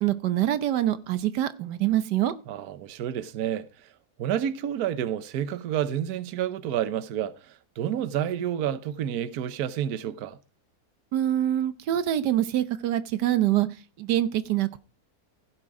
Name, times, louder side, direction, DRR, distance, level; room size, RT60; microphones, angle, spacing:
voice 1, 0.0-2.3 11.1-13.7 14.0-14.8, right 12 dB, 90° right, 1.5 m, -25 dB
voice 2, 2.5-3.7 4.2-10.4, right 10 dB, 70° right, 1.3 m, -29 dB
16.0 x 7.5 x 4.8 m
omnidirectional pair, 1.7 m